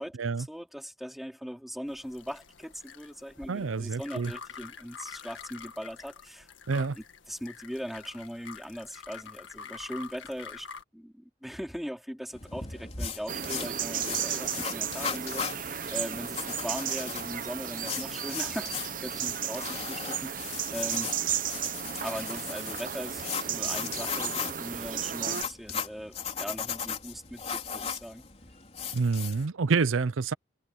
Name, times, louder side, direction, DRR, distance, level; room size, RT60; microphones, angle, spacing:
voice 1, 0.0-10.7 10.9-21.1 22.0-28.2, equal, ahead, 4.2 m, -40 dB
sound 1, 1.9-10.8, left 6 dB, 75° left, 1.7 m, -47 dB
voice 2, 3.5-4.3 6.7-7.0 28.9-30.3, right 4 dB, 90° right, 0.6 m, -27 dB
sound 2, 12.3-29.5, left 6 dB, 30° left, 4.0 m, -38 dB
sound 3, 13.3-25.4, right 8 dB, 45° right, 1.1 m, -34 dB
head